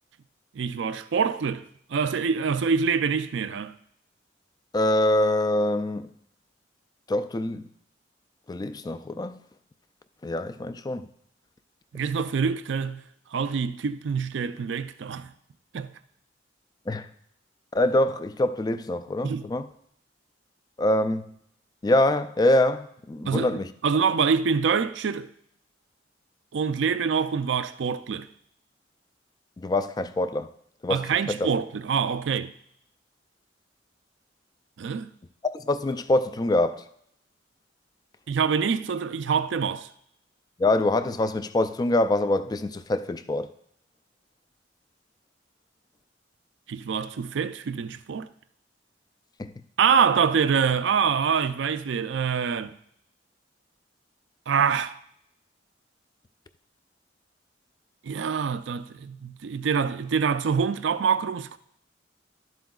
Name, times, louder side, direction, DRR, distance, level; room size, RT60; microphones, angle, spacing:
voice 1, 0.5-1.6 1.9-3.7 11.9-13.0 13.3-15.3 15.7-15.9 19.2-19.5 23.3-25.3 26.5-28.3 30.9-32.5 34.8-35.1 38.3-39.9 46.7-48.3 49.8-52.8 54.5-55.0 58.0-61.6, right 6 dB, 70° right, 0.4 m, -25 dB
voice 2, 4.7-6.1 7.1-7.7 8.5-9.4 10.2-11.1 16.9-17.1 17.7-19.7 20.8-21.3 21.8-23.7 29.6-30.5 30.8-31.0 31.3-31.4 35.4-36.8 40.6-43.5 49.4-49.5, left 1 dB, 20° left, 0.3 m, -24 dB
12.0 x 7.6 x 2.4 m
head